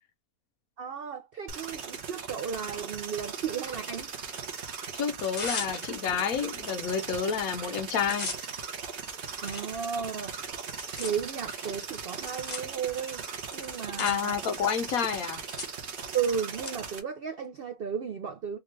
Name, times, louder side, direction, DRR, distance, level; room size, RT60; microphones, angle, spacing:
voice 1, 0.8-4.1 9.4-10.5 10.9-13.3 13.5-14.4 16.1-18.6, right 7 dB, 70° right, 0.5 m, -34 dB
sound 1, 1.5-17.0, right 6 dB, 55° right, 1.0 m, -39 dB
Tearing, 3.8-4.6 5.1-6.2 6.7-6.8 7.1-7.4 7.7-16.7, left 3 dB, 35° left, 0.9 m, -42 dB
voice 2, 4.9-8.3 14.0-15.4, left 7 dB, 70° left, 1.1 m, -29 dB
3.6 x 2.4 x 3.2 m
omnidirectional pair, 1.7 m